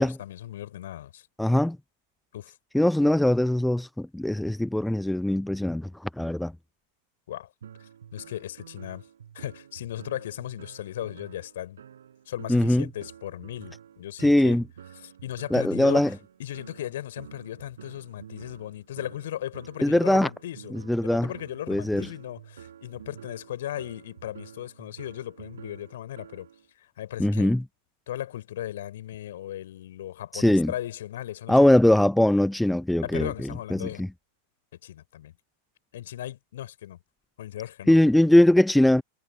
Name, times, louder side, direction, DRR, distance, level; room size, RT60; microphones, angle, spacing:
voice 1, 0.0-1.3 2.3-2.6 7.3-7.5 7.8-9.0 9.3-11.8 12.3-14.6 15.0-26.5 26.8-27.6 28.1-31.7 33.0-34.0 34.8-35.3 35.9-37.0 37.4-38.0, left 12 dB, 60° left, 3.5 m, -37 dB
voice 2, 1.4-1.8 2.7-6.5 12.5-12.9 14.2-14.6 15.5-16.1 19.8-20.3 20.7-21.3 21.7-22.1 27.2-27.6 30.3-30.7 31.5-34.1 37.9-39.0, left 1 dB, 5° left, 0.5 m, -21 dB
sound 1, 7.6-26.7, right 9 dB, 65° right, 5.5 m, -48 dB
figure-of-eight pair, 90°, 0 cm